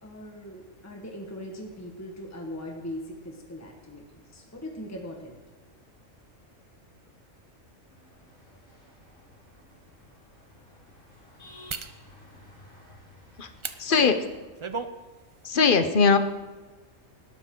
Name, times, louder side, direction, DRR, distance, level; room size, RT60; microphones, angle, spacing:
voice 1, 0.0-5.3, equal, 10° left, 1 dB, 1.5 m, -40 dB
Road Traffic India, 7.9-14.4, left 1 dB, 85° left, 5.0 m, -54 dB
sound 1, 8.9-9.0 9.6-9.7 11.7-12.0 13.6-13.8 14.3-14.9 15.3-15.5, right 4 dB, 35° right, 0.5 m, -34 dB
voice 2, 13.8-14.3 15.4-16.2, left 5 dB, 45° left, 9 dB, 1.0 m, -20 dB
19.5 x 12.0 x 3.9 m, 1.3 s
omnidirectional pair, 1.3 m